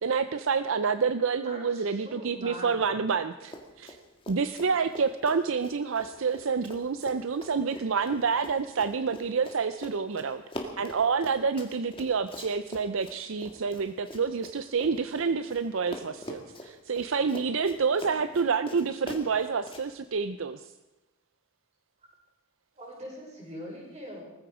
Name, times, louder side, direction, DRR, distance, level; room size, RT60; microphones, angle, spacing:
voice 1, 0.0-4.0 4.3-20.7, right 5 dB, 60° right, 11 dB, 0.5 m, -28 dB
voice 2, 1.4-2.8 7.7-7.8 22.8-24.2, equal, 30° right, -2 dB, 5.8 m, -42 dB
Run, 3.4-4.0 4.2-15.6 15.9-19.8, left 1 dB, 25° left, 2.0 m, -43 dB
19.0 x 15.0 x 4.9 m, 1.1 s
head